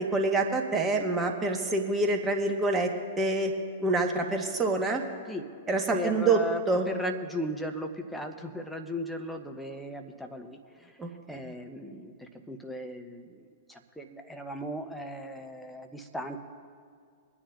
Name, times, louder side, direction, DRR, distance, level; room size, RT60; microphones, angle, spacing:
voice 1, 0.0-2.9 3.2-3.5 3.8-5.0 5.7-6.4 6.7-6.8 11.0-11.1, right 3 dB, 15° right, 3 dB, 1.4 m, -26 dB
voice 2, 5.9-16.4, left 1 dB, 5° left, 4 dB, 1.0 m, -37 dB
24.0 x 9.9 x 2.6 m, 2.2 s
figure-of-eight pair, 105°, 0 cm